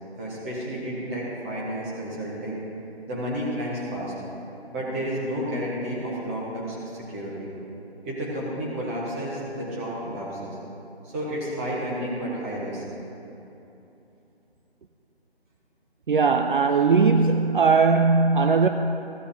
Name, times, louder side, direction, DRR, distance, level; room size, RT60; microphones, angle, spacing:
voice 1, 0.1-2.6 3.1-4.1 4.7-7.5 8.0-10.6 11.0-12.8, equal, 15° right, -6 dB, 1.4 m, -31 dB
voice 2, 16.1-18.7, right 4 dB, 55° right, 6 dB, 0.5 m, -19 dB
15.5 x 7.7 x 2.8 m, 2.9 s
figure-of-eight pair, 160°, 32 cm